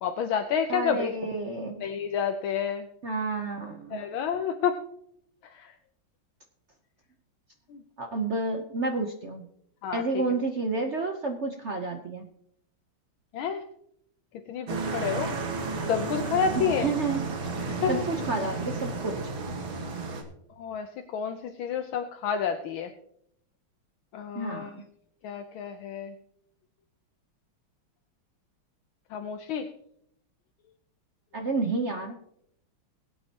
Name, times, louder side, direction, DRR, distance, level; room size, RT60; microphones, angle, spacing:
voice 1, 0.0-1.1 1.8-2.9 3.9-4.7 5.4-5.7 7.7-7.8 9.8-10.2 13.3-13.6 14.5-15.4 15.9-16.9 17.8-18.1 20.6-22.9 24.1-24.7 25.2-26.1 29.1-29.7, left 7 dB, 75° left, 6 dB, 1.5 m, -29 dB
voice 2, 0.7-1.8 3.0-4.0 8.0-9.5 9.9-12.3 15.0-15.4 16.6-17.2 17.9-19.2 24.3-24.7 31.3-32.2, right 3 dB, 55° right, 4 dB, 0.8 m, -30 dB
sound 1, 14.7-20.2, right 3 dB, 75° right, 2.3 m, -32 dB
21.5 x 8.5 x 2.9 m, 0.72 s
omnidirectional pair, 2.3 m